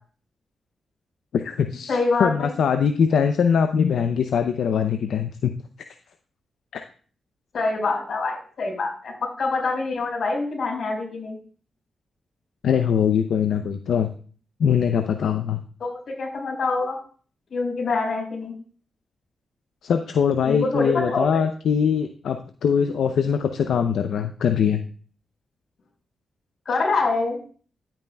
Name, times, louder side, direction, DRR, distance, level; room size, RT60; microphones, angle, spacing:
voice 1, 1.3-5.5 6.7-6.8 12.6-14.1 14.6-15.6 19.8-24.8, left 7 dB, 85° left, 7 dB, 0.5 m, -22 dB
voice 2, 1.9-2.5 7.5-11.4 15.8-17.0 17.5-18.5 20.4-21.4 26.7-27.4, left 3 dB, 65° left, 0 dB, 4.5 m, -25 dB
12.0 x 8.8 x 2.3 m, 0.42 s
cardioid pair, 80°, 0 cm